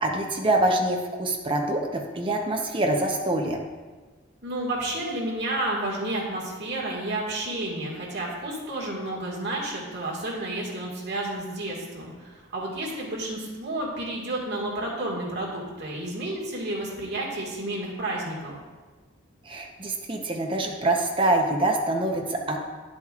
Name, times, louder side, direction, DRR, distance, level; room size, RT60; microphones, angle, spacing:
voice 1, 0.0-3.6 19.5-22.6, right 2 dB, 25° right, 1 dB, 0.8 m, -25 dB
voice 2, 4.4-18.6, right 1 dB, 55° right, -3 dB, 1.9 m, -31 dB
10.0 x 7.6 x 2.5 m, 1.4 s
head